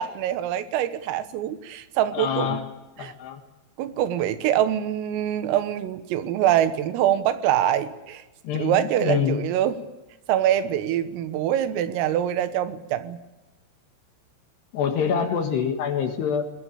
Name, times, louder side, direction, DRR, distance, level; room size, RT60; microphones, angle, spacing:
voice 1, 0.0-2.6 3.0-3.1 3.8-8.2 8.5-9.8 10.3-13.2, right 11 dB, 90° right, 3.9 m, -24 dB
voice 2, 2.1-2.7 3.0-3.4 8.4-9.4 14.7-16.5, left 7 dB, 65° left, 3.4 m, -26 dB
21.5 x 21.0 x 8.5 m
omnidirectional pair, 5.8 m